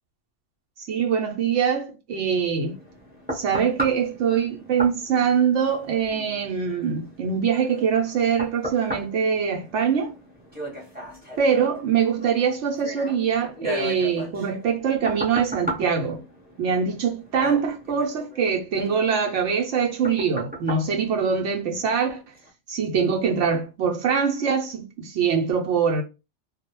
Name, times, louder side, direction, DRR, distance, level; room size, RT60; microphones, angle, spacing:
voice 1, 0.8-2.8 3.3-10.1 11.4-16.2 16.6-22.2 22.7-26.0, right 6 dB, 75° right, 0.9 m, -23 dB
sound 1, 2.6-21.9 22.4-22.5, equal, 10° right, 0.7 m, -36 dB
2.3 x 2.1 x 2.9 m
omnidirectional pair, 1.3 m